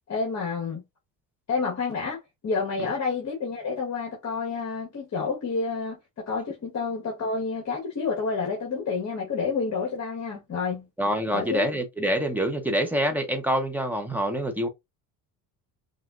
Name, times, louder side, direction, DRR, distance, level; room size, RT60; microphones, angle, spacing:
voice 1, 0.1-0.8 1.5-10.9 11.3-11.7, left 4 dB, 40° left, 1.7 m, -29 dB
voice 2, 11.0-14.7, right 1 dB, 5° right, 1.1 m, -26 dB
5.7 x 2.7 x 2.6 m
cardioid pair, 120°, 41 cm